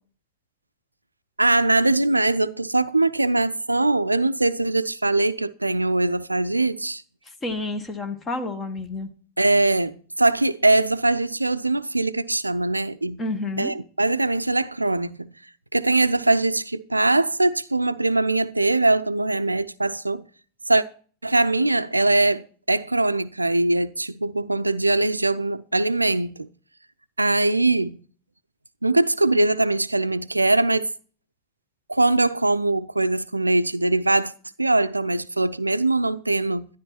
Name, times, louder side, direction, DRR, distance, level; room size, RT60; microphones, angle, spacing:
voice 1, 1.4-7.0 9.4-13.2 13.6-15.3 15.7-20.3 20.7-20.8 21.2-26.5 27.2-28.0 28.8-30.9 31.9-34.3 34.6-36.7, right 2 dB, 85° right, 0.5 m, -22 dB
voice 2, 7.4-9.1 13.2-13.7, left 2 dB, 20° left, 1.8 m, -29 dB
13.0 x 11.0 x 4.3 m
figure-of-eight pair, 90°, 0 cm